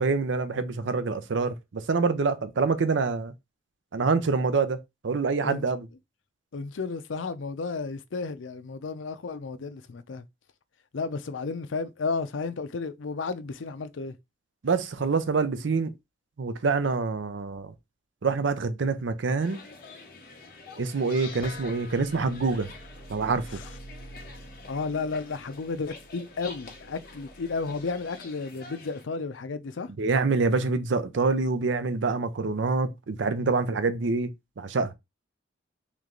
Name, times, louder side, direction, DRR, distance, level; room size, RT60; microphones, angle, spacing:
voice 1, 0.0-3.3 3.9-4.8 5.0-5.9 14.6-15.9 16.4-17.7 18.2-19.6 20.8-22.7 23.1-23.6 30.0-34.3 34.6-34.9, right 4 dB, 80° right, 0.5 m, -26 dB
voice 2, 6.5-10.2 10.9-14.1 23.5-23.7 24.7-29.9, left 4 dB, 85° left, 0.5 m, -33 dB
sound 1, 19.4-29.0, left 4 dB, 50° left, 1.1 m, -47 dB
sound 2, 21.4-28.2, equal, 65° left, 1.4 m, -47 dB
3.3 x 3.2 x 3.8 m
head